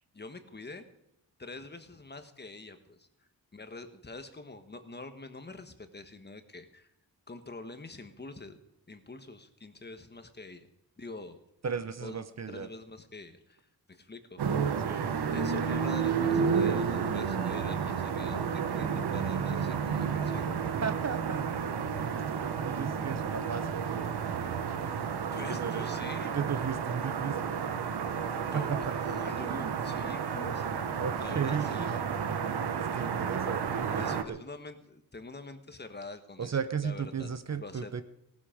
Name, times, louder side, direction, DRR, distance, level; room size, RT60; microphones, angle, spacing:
voice 1, 0.1-0.9 1.4-3.1 3.5-6.9 7.3-8.6 8.9-10.7 11.0-11.4 12.0-14.4 15.3-20.6 25.3-26.4 28.4-30.7 31.2-31.9 34.0-37.3 37.6-37.9, left 3 dB, 25° left, 8 dB, 1.4 m, -45 dB
voice 2, 11.6-12.7 14.8-15.1 20.8-21.5 22.1-23.8 25.5-25.8 26.3-27.6 28.5-28.8 29.5-29.7 31.0-31.9 32.7-34.4 36.4-38.0, right 6 dB, 45° right, 11 dB, 0.9 m, -35 dB
sound 1, 14.4-34.2, right 6 dB, 90° right, 1.2 m, -31 dB
18.0 x 13.0 x 5.1 m, 0.82 s
wide cardioid pair, 135°, 38 cm